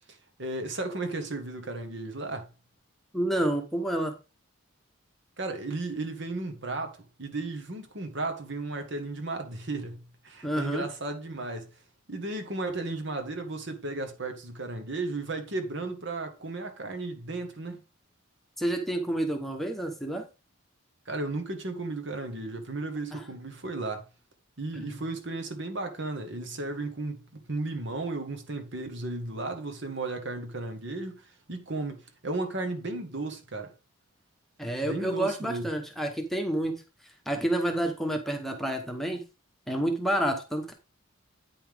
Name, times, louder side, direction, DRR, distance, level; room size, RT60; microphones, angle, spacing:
voice 1, 0.1-2.5 5.4-11.7 12.1-17.8 21.0-24.1 24.6-33.7 34.8-35.7, right 2 dB, 55° right, 1.4 m, -34 dB
voice 2, 3.1-4.1 10.4-10.8 18.6-20.2 23.1-23.2 24.7-25.0 34.6-36.8 37.0-39.2 39.7-40.7, right 1 dB, ahead, 1.1 m, -29 dB
9.2 x 5.6 x 3.5 m
head